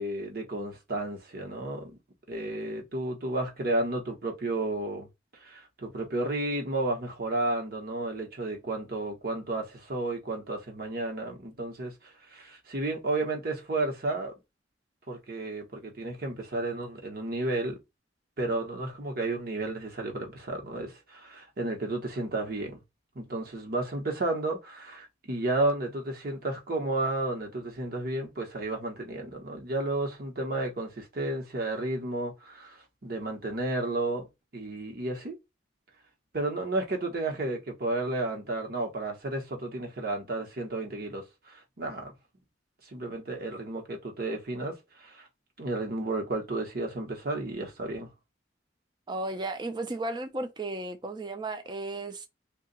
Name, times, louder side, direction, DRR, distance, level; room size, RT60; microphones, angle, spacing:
voice 1, 0.0-2.0 2.3-5.1 5.4-14.3 15.1-17.8 18.4-22.8 23.1-32.8 33.0-34.3 34.5-35.4 36.3-42.1 42.9-45.3 45.6-48.1, right 2 dB, 55° right, 1.0 m, -32 dB
voice 2, 49.1-52.3, right 2 dB, 25° right, 0.5 m, -34 dB
2.8 x 2.4 x 3.9 m
head